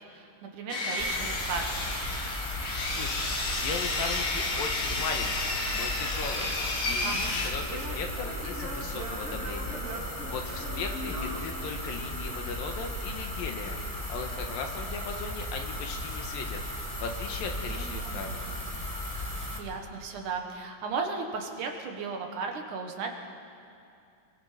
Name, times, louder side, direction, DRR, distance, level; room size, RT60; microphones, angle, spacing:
voice 1, 0.0-2.0 7.0-7.5 17.4-18.3 19.1-19.3 19.6-23.1, right 4 dB, 65° right, 3 dB, 2.9 m, -36 dB
Sawing, 0.7-7.5, left 2 dB, 45° left, 2.4 m, -31 dB
sound 1, 1.0-19.6, left 1 dB, 15° left, 1.5 m, -36 dB
voice 2, 2.9-3.3 3.6-6.5 6.8-18.4, left 5 dB, 80° left, 3 dB, 3.3 m, -38 dB
Singing / Plucked string instrument, 6.4-12.3, equal, 40° right, 5.1 m, -41 dB
29.0 x 23.0 x 5.1 m, 2.5 s
omnidirectional pair, 4.0 m